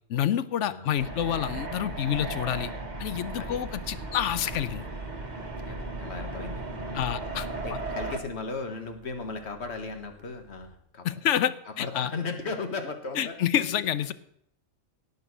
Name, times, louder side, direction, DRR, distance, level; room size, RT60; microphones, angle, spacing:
voice 1, 0.1-2.7 3.0-4.9 6.9-7.8 11.0-12.1 13.1-14.1, left 10 dB, 80° left, 15 dB, 1.0 m, -28 dB
voice 2, 0.6-0.9 3.4-3.6 5.6-7.1 7.6-11.2 11.8-13.4, left 4 dB, 65° left, 5 dB, 1.8 m, -36 dB
sound 1, 1.0-8.2, right 2 dB, 35° right, 1.5 m, -36 dB
sound 2, 3.4-10.8, equal, 45° left, 3.9 m, -53 dB
17.5 x 6.3 x 6.1 m, 0.71 s
omnidirectional pair, 1.2 m